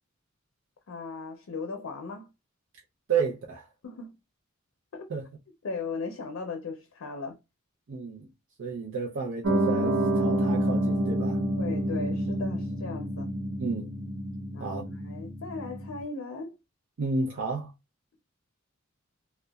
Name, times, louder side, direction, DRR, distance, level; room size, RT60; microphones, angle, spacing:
voice 1, 0.9-2.3 3.8-4.2 4.9-5.1 5.6-7.4 11.6-13.3 14.5-16.5, left 4 dB, 85° left, 0.5 m, -37 dB
voice 2, 3.1-3.7 5.1-5.3 7.9-8.3 8.6-11.4 13.6-13.9 14.6-14.9 17.0-17.7, right 4 dB, 65° right, 0.5 m, -31 dB
Piano, 9.4-16.0, right 1 dB, 80° right, 0.8 m, -28 dB
2.8 x 2.1 x 2.2 m
head